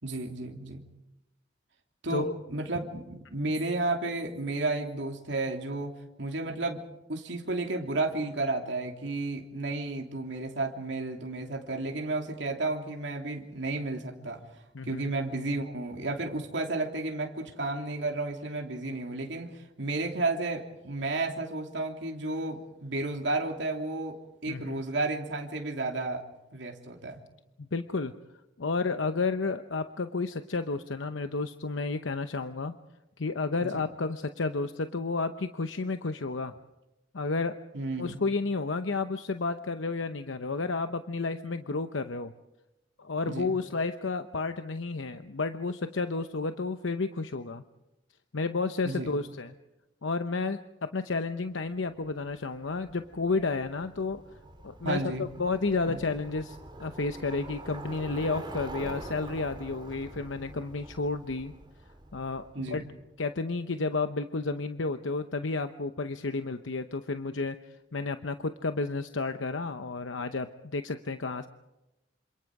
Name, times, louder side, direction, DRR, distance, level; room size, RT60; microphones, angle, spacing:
voice 1, 0.0-0.8 2.0-5.9 6.2-6.8 7.1-14.4 14.8-24.1 24.4-26.2 26.5-27.2 37.7-38.2 43.2-43.5 48.8-49.2 54.8-55.3 55.8-56.0 62.5-62.9, right 2 dB, 65° right, 2 dB, 3.1 m, -32 dB
voice 2, 24.5-24.8 27.6-28.1 28.6-32.7 33.2-36.5 37.1-37.5 38.0-42.3 43.0-47.6 48.3-49.5 50.0-50.6 50.9-54.2 54.6-55.0 55.4-61.5 62.1-62.8 63.2-67.6 67.9-71.5, left 3 dB, 80° left, 9 dB, 0.9 m, -31 dB
Bicycle, 52.0-62.9, right 2 dB, 25° right, 2.9 m, -45 dB
28.0 x 27.0 x 4.9 m, 0.96 s
head